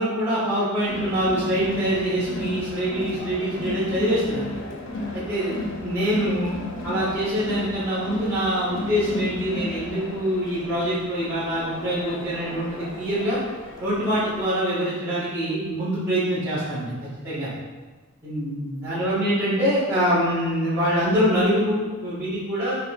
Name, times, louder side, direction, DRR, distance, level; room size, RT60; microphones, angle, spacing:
voice 1, 0.0-4.5 5.1-13.4 13.8-16.9 17.2-17.5 18.2-22.8, equal, 10° right, -14 dB, 1.7 m, -24 dB
Crowd, 0.8-14.4, left 2 dB, 65° left, 1.0 m, -34 dB
5.7 x 5.3 x 3.2 m, 1.3 s
head